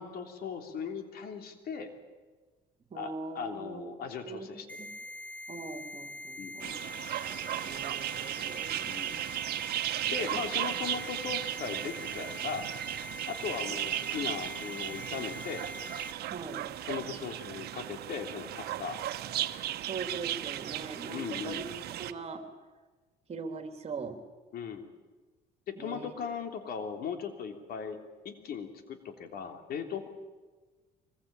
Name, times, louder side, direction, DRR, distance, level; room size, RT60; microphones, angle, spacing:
voice 1, 0.0-1.9 2.9-4.7 6.4-6.8 8.8-9.2 10.1-12.7 13.3-15.6 16.8-19.0 21.1-21.7 24.5-24.9 25.7-30.1, left 6 dB, 65° left, 6 dB, 3.3 m, -38 dB
voice 2, 2.9-3.9 4.2-4.5 4.8-4.9 5.5-6.7 7.6-8.8 10.0-10.3 16.3-16.6 19.8-21.6 22.0-22.5 23.3-24.2 25.8-26.1, right 4 dB, 40° right, 7 dB, 3.0 m, -41 dB
sound 1, 4.7-16.1, left 1 dB, 10° left, 1.3 m, -43 dB
sound 2, 6.6-22.1, right 13 dB, 70° right, 1.2 m, -36 dB
24.5 x 22.0 x 9.0 m, 1.3 s
cardioid pair, 110°, 17 cm